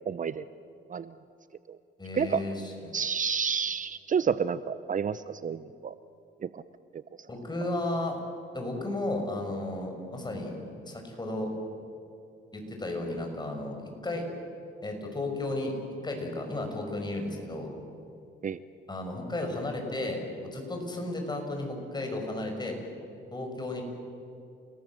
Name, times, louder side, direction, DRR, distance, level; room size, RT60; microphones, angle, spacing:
voice 1, 0.1-0.4 0.9-1.1 1.7-1.8 2.1-2.4 2.9-5.9 6.4-6.6 18.4-18.6, right 7 dB, 40° right, 15 dB, 0.7 m, -30 dB
voice 2, 2.0-2.9 7.3-8.2 8.5-10.6 10.9-11.5 12.5-13.8 14.0-14.2 14.8-15.8 16.0-17.7 18.9-22.7 23.3-23.8, left 2 dB, 20° left, 2 dB, 6.4 m, -33 dB
30.0 x 19.5 x 7.7 m, 2.6 s
cardioid pair, 90°, 20 cm